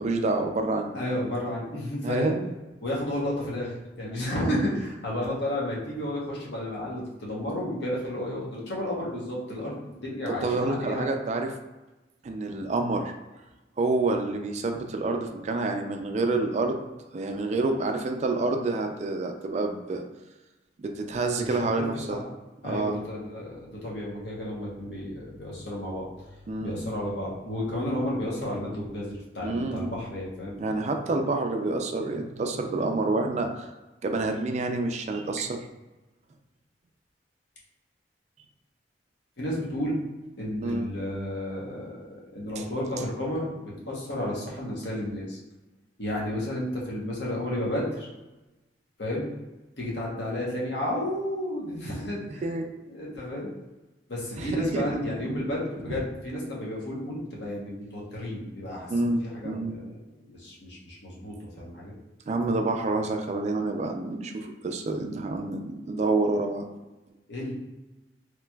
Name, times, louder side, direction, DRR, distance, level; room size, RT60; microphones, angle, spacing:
voice 1, 0.0-1.0 2.0-2.5 10.4-11.5 12.2-13.1 13.8-16.8 17.1-20.0 20.8-22.2 22.6-23.0 26.5-26.8 29.4-30.0 30.6-33.7 34.0-35.6 40.6-40.9 42.6-42.7 52.4-52.6 54.4-55.0 55.3-55.4 55.9-56.0 58.9-59.8 62.3-66.7, right 2 dB, 40° right, 4 dB, 0.3 m, -28 dB
voice 2, 0.9-2.3 2.8-11.1 21.4-21.6 21.9-22.2 22.6-26.0 26.6-30.6 39.4-40.0 40.4-45.4 46.0-48.1 49.0-49.3 49.8-52.4 52.9-53.5 54.1-59.9 60.3-61.9 67.3-67.5, left 1 dB, 80° left, -4 dB, 0.9 m, -32 dB
3.2 x 2.9 x 2.2 m, 1.1 s
head